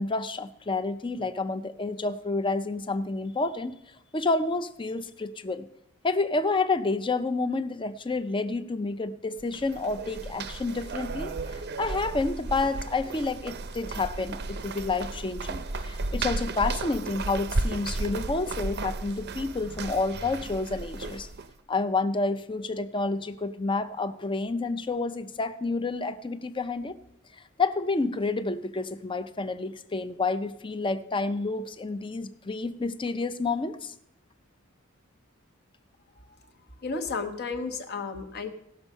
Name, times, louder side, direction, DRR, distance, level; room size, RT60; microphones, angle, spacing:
voice 1, 0.0-3.8 4.1-5.7 6.0-21.3 21.7-27.0 27.6-33.9, left 3 dB, 25° left, 12 dB, 0.6 m, -29 dB
sound 1, 9.4-21.5, right 3 dB, 50° right, 0.6 m, -34 dB
voice 2, 36.8-38.5, left 4 dB, 50° left, 7 dB, 1.1 m, -32 dB
17.0 x 6.2 x 5.5 m, 0.78 s
head